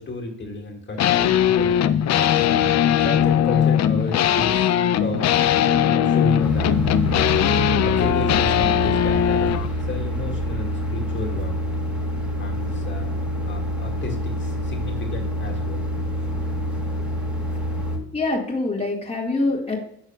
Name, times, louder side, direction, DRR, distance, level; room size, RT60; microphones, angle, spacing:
voice 1, 0.0-2.2 3.0-5.4 5.8-6.8 7.8-11.6 12.4-13.1 13.4-15.8, left 2 dB, 40° left, 1 dB, 2.3 m, -32 dB
sound 1, 1.0-9.7, left 9 dB, 60° left, 0.6 m, -19 dB
sound 2, 6.4-18.0, equal, 5° right, 2.3 m, -27 dB
voice 2, 18.1-19.8, left 2 dB, 20° left, -3 dB, 1.9 m, -24 dB
10.5 x 6.2 x 2.4 m, 0.72 s
cardioid pair, 90°, 30 cm